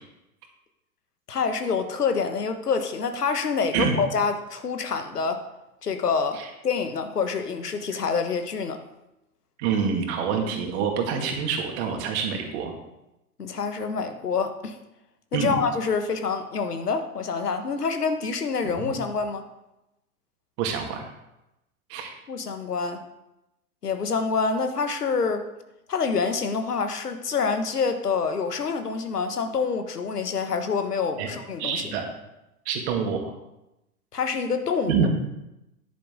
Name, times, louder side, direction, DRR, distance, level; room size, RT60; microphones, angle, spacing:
voice 1, 1.3-5.4 5.8-8.8 13.4-14.8 15.3-19.4 22.3-23.0 23.8-25.5 25.9-31.9 34.1-35.1, left 5 dB, 80° left, 7 dB, 1.4 m, -27 dB
voice 2, 9.6-12.7 15.3-15.6 18.7-18.9 20.6-21.1 21.9-22.2 31.2-31.3 31.6-32.1 32.7-33.3 34.9-35.1, right 6 dB, 45° right, 2 dB, 2.3 m, -26 dB
10.5 x 10.0 x 3.8 m, 0.92 s
figure-of-eight pair, 100°, 46 cm